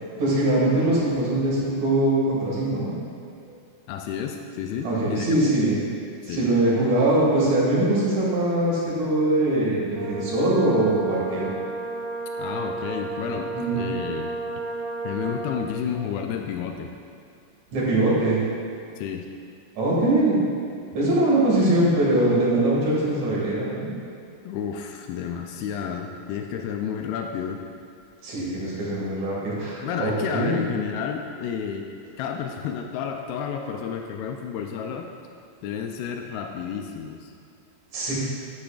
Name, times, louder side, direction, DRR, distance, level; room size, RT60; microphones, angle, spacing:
voice 1, 0.2-3.0 4.8-5.8 6.2-11.5 13.5-13.8 17.7-18.4 19.8-20.4 20.9-23.9 28.2-30.6 37.9-38.1, right 1 dB, 50° right, -7 dB, 2.7 m, -22 dB
voice 2, 3.9-5.4 6.2-6.4 12.4-14.3 15.0-16.9 19.0-19.3 24.5-27.6 29.8-31.9 32.2-35.1 35.6-37.3, left 7 dB, 90° left, 3 dB, 2.2 m, -31 dB
Brass instrument, 9.9-15.8, right 3 dB, 85° right, 3.2 m, -32 dB
11.0 x 8.5 x 2.4 m, 2.4 s
omnidirectional pair, 5.0 m